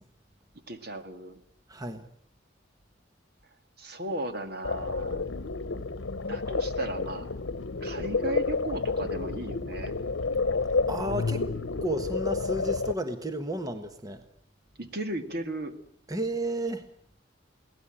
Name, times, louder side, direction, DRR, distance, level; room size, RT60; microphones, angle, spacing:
voice 1, 0.7-1.4 3.8-5.3 6.3-7.3 7.8-10.0 14.8-15.7, right 1 dB, 55° right, 8 dB, 2.0 m, -35 dB
voice 2, 1.7-2.0 10.9-11.5 11.8-14.2 16.1-16.9, right 1 dB, 20° right, 8 dB, 1.3 m, -32 dB
sound 1, 4.6-12.9, left 4 dB, 85° left, 0.9 m, -30 dB
23.0 x 17.5 x 8.9 m, 0.66 s
head